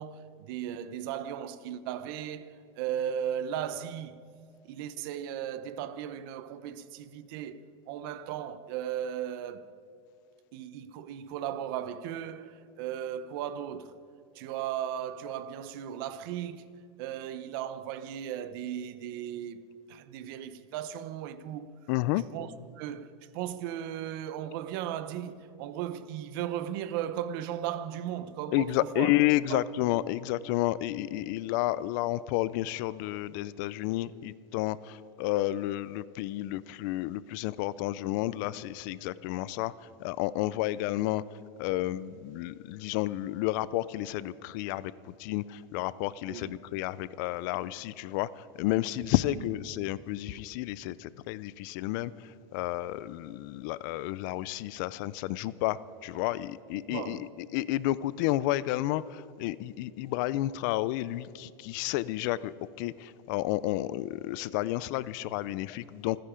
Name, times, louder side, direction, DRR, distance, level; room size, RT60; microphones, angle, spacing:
voice 1, 0.0-4.2 4.7-9.7 10.5-14.0 14.3-16.7 17.0-21.7 22.3-29.1 29.5-29.7 46.3-46.6 49.3-49.4 56.9-57.3, right 10 dB, 50° right, 0.7 m, -36 dB
voice 2, 21.9-22.2 28.5-66.2, left 16 dB, 45° left, 0.4 m, -31 dB
27.5 x 10.0 x 5.0 m
supercardioid pair, 165°, 15 cm